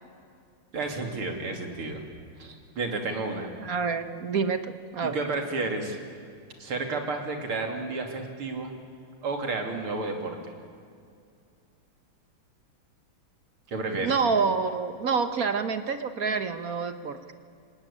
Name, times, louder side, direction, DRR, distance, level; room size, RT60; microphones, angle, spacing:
voice 1, 0.7-2.0 2.4-3.5 5.0-6.0 6.6-8.7 9.2-10.4 13.7-14.1, right 3 dB, 80° right, 3 dB, 3.7 m, -31 dB
voice 2, 3.6-5.2 14.0-17.2, right 5 dB, 50° right, 9 dB, 1.4 m, -27 dB
26.5 x 19.0 x 10.0 m, 2.3 s
omnidirectional pair, 2.3 m